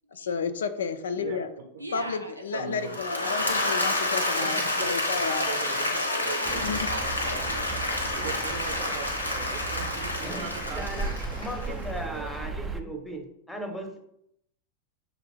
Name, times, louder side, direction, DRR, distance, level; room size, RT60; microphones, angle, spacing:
voice 1, 0.1-1.5 1.9-5.5 6.6-6.9, left 5 dB, 65° left, 11 dB, 0.3 m, -32 dB
voice 2, 1.2-1.7 2.5-2.9 4.4-6.7 8.1-11.4 11.7-12.3, right 6 dB, 50° right, 3 dB, 0.6 m, -40 dB
voice 3, 1.8-2.7 5.9-8.4, right 1 dB, 90° right, 3 dB, 0.6 m, -40 dB
Applause / Crowd, 2.8-11.9, left 2 dB, 85° left, 0.7 m, -29 dB
sound 1, 6.4-12.8, right 3 dB, 10° right, 0.4 m, -36 dB
voice 4, 10.7-14.0, right 1 dB, 5° left, 5 dB, 0.8 m, -37 dB
6.3 x 2.4 x 3.3 m, 0.76 s
figure-of-eight pair, 90°, 0 cm